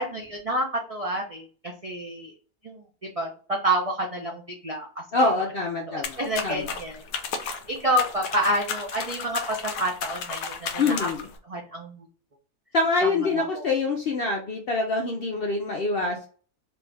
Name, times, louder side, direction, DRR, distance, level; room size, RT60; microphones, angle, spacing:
voice 1, 0.0-2.3 2.6-2.8 3.2-4.9 5.9-11.1 11.5-12.1 13.0-13.7, right 1 dB, 60° right, 0 dB, 0.3 m, -29 dB
voice 2, 5.1-6.7 10.8-11.3 12.7-16.3, left 3 dB, 60° left, 1 dB, 0.6 m, -25 dB
sound 1, 6.0-11.4, left 5 dB, 85° left, 1.2 m, -34 dB
3.3 x 2.5 x 3.3 m, 0.39 s
omnidirectional pair, 1.6 m